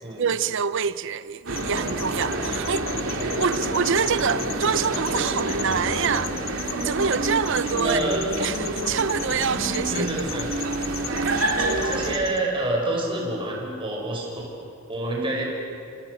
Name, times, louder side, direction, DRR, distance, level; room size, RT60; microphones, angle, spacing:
voice 1, 0.2-2.9 3.2-6.3 6.8-8.1 8.4-10.3, right 6 dB, 65° right, 0.6 m, -26 dB
sound 1, 1.5-12.4, left 7 dB, 45° left, 1.4 m, -37 dB
sound 2, 1.5-12.2, right 2 dB, 90° right, 2.8 m, -28 dB
voice 2, 7.8-8.2 9.9-10.5 11.6-14.4 14.9-15.5, right 1 dB, 25° right, 6.0 m, -27 dB
28.0 x 27.5 x 6.7 m
head